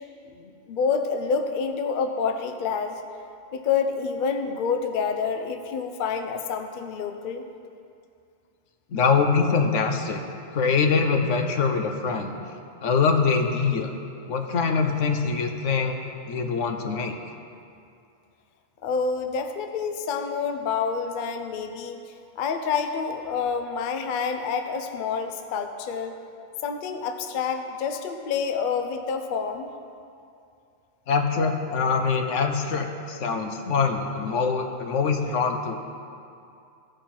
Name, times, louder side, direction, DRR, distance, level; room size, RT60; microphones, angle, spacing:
voice 1, 0.3-3.0 3.5-7.4 18.8-26.2 26.6-29.7, left 5 dB, 55° left, 6 dB, 0.6 m, -28 dB
voice 2, 8.9-10.2 10.5-12.3 12.8-13.9 14.3-16.0 16.3-17.1 31.1-35.7, left 5 dB, 75° left, 5 dB, 1.1 m, -24 dB
15.5 x 5.2 x 4.3 m, 2.5 s
omnidirectional pair, 1.3 m